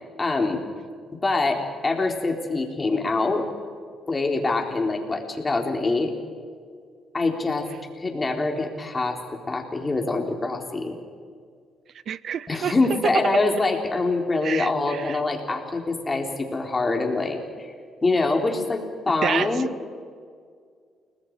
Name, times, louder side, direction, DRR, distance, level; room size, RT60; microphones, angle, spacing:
voice 1, 0.2-0.6 1.2-3.5 4.1-6.1 7.1-7.7 8.0-9.2 9.5-11.0 12.5-17.7 18.0-19.7, left 3 dB, 25° left, 2 dB, 3.8 m, -24 dB
voice 2, 12.1-12.7 13.1-13.2 14.4-15.2 19.2-19.7, right 8 dB, 60° right, 19 dB, 0.4 m, -28 dB
30.0 x 20.0 x 4.8 m, 2.1 s
cardioid pair, 90°, 0 cm